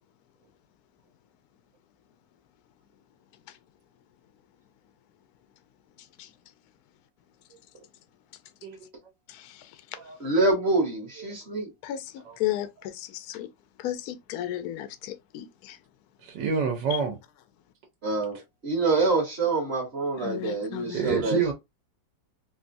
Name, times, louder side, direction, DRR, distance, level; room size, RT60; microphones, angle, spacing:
voice 1, 9.3-9.6 11.8-13.5 13.8-15.8 20.2-21.0, left 13 dB, 70° left, 0.9 m, -34 dB
voice 2, 10.2-11.7 18.0-21.5, right 3 dB, 40° right, 1.2 m, -26 dB
voice 3, 16.2-17.2 20.9-21.5, right 5 dB, 70° right, 1.3 m, -27 dB
3.7 x 2.3 x 2.5 m
omnidirectional pair, 2.1 m